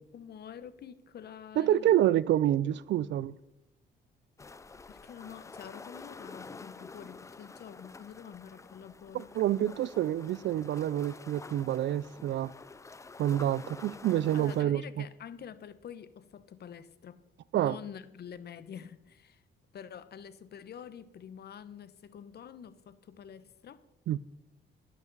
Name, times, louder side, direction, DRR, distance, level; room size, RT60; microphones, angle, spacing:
voice 1, 0.1-2.0 4.9-9.4 14.3-17.2 17.5-19.4 19.7-23.8, left 8 dB, 55° left, 0.9 m, -47 dB
voice 2, 1.6-3.4 9.1-12.5 13.2-15.0 17.5-17.8 24.1-24.2, right 12 dB, 65° right, 0.4 m, -28 dB
sound 1, 4.4-14.6, left 4 dB, 15° left, 0.3 m, -49 dB
12.0 x 11.0 x 4.0 m
cardioid pair, 90°, 20 cm